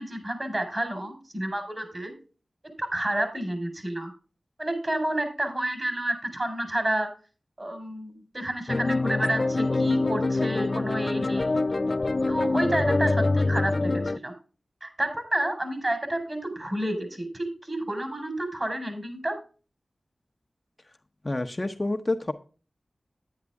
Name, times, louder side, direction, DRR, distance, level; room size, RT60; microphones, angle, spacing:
voice 1, 0.0-2.1 2.8-4.1 4.6-7.1 7.6-11.5 12.3-14.3 14.8-19.4, right 1 dB, 35° right, 4.7 m, -30 dB
sound 1, 8.7-14.2, left 2 dB, 50° left, 0.4 m, -25 dB
voice 2, 21.2-22.3, left 2 dB, 30° left, 1.0 m, -28 dB
10.0 x 9.6 x 3.6 m
cardioid pair, 50°, 0 cm